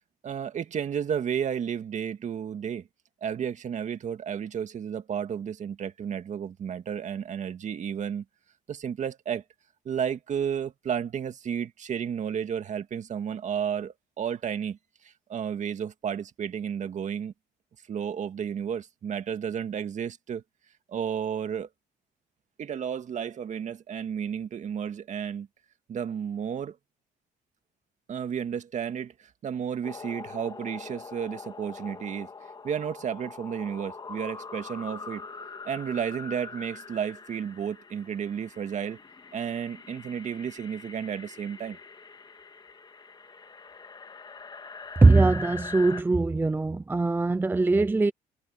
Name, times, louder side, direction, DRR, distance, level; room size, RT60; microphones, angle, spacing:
voice 1, 0.2-2.9 3.2-8.2 8.7-9.4 9.9-17.3 17.9-20.4 20.9-21.7 22.6-25.5 25.9-26.8 28.1-32.3 32.6-35.3 35.6-39.0 39.3-41.8, right 8 dB, 45° right, 2.0 m, -32 dB
sound 1, 29.8-46.0, left 4 dB, 25° left, 2.1 m, -43 dB
voice 2, 45.0-48.1, right 3 dB, 10° right, 0.5 m, -21 dB
cardioid pair, 110°, 17 cm